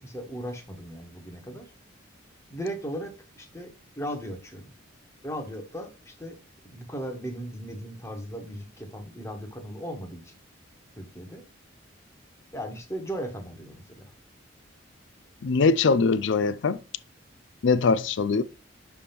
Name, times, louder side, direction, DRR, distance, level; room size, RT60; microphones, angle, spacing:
voice 1, 0.0-1.6 2.5-4.7 5.2-6.4 6.6-10.4 11.0-11.4 12.5-14.1, equal, 15° left, 1.3 m, -37 dB
voice 2, 15.4-16.8 17.6-18.4, left 4 dB, 65° left, 0.4 m, -22 dB
6.7 x 3.6 x 5.8 m
head